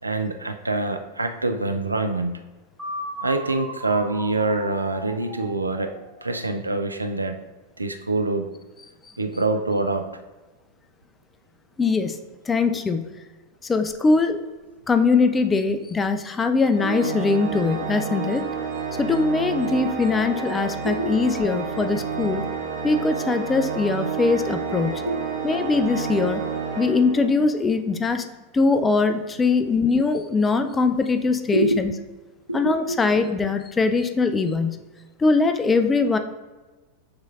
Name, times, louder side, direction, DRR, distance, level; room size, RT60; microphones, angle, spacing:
voice 1, 0.0-2.4 3.2-5.9 6.2-7.4 7.8-8.5 9.2-10.1 20.9-21.1 21.5-21.6 24.7-25.5 31.5-31.8 32.5-33.0, right 2 dB, 80° right, 7 dB, 0.4 m, -25 dB
sound 1, 2.8-6.7, equal, 5° right, 1.1 m, -37 dB
voice 2, 11.8-12.2 12.5-13.2 13.6-14.4 14.9-18.5 19.0-22.4 22.8-25.0 25.4-26.4 26.8-28.3 28.5-31.9 32.5-34.9 35.2-36.2, left 4 dB, 15° left, 8 dB, 0.3 m, -21 dB
Organ, 16.7-27.6, right 6 dB, 50° right, 0.9 m, -30 dB
6.5 x 3.1 x 2.4 m, 1.2 s
figure-of-eight pair, 90°, 0 cm